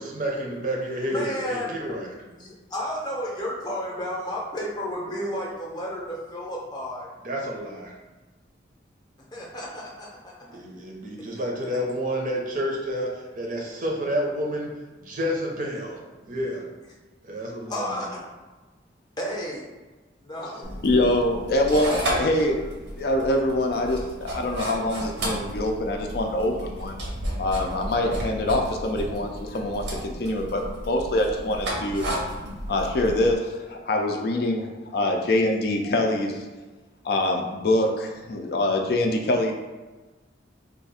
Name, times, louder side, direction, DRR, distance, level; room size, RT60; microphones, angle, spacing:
voice 1, 0.0-2.1 7.2-7.9 10.5-16.0 16.3-16.7 17.2-17.9, equal, 45° right, -1 dB, 0.6 m, -30 dB
voice 2, 1.0-1.8 2.1-7.1 9.3-10.6 11.2-11.5 17.7-18.2 19.2-19.7 20.2-20.7, equal, 25° left, -3 dB, 0.6 m, -32 dB
sound 1, 20.6-33.3, equal, 75° right, 0.8 m, -33 dB
voice 3, 20.8-22.6 23.0-27.0 27.4-32.1 32.7-36.4 37.0-39.5, left 1 dB, 55° left, 2 dB, 0.4 m, -24 dB
2.7 x 2.4 x 4.0 m, 1.2 s
head